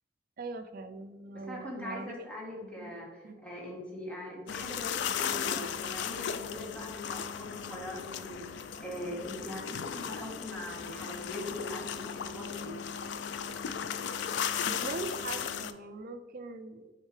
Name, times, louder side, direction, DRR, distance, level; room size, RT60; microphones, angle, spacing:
voice 1, 0.4-2.3 2.6-2.9 3.2-3.3 14.7-16.9, right 3 dB, 50° right, 8 dB, 0.4 m, -41 dB
voice 2, 1.3-12.7, left 1 dB, 5° left, -4 dB, 1.3 m, -42 dB
sound 1, 4.5-15.7, left 7 dB, 60° left, 0.3 m, -36 dB
6.5 x 4.4 x 3.2 m, 1.3 s
head